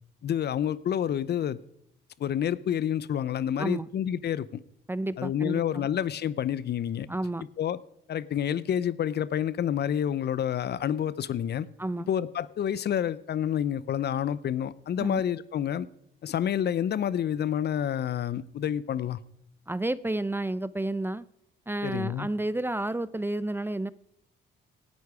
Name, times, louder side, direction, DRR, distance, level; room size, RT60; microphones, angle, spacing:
voice 1, 0.2-1.6 2.2-4.6 5.2-7.1 7.6-7.8 8.1-11.7 12.1-15.9 16.2-19.2 21.8-22.3, left 9 dB, 55° left, 18 dB, 0.7 m, -28 dB
voice 2, 3.6-3.9 4.9-5.9 7.1-7.5 11.8-12.1 15.0-15.2 19.7-21.3 21.7-23.9, right 1 dB, 10° right, 17 dB, 0.5 m, -31 dB
18.0 x 10.5 x 4.9 m, 0.76 s
cardioid pair, 90°, 20 cm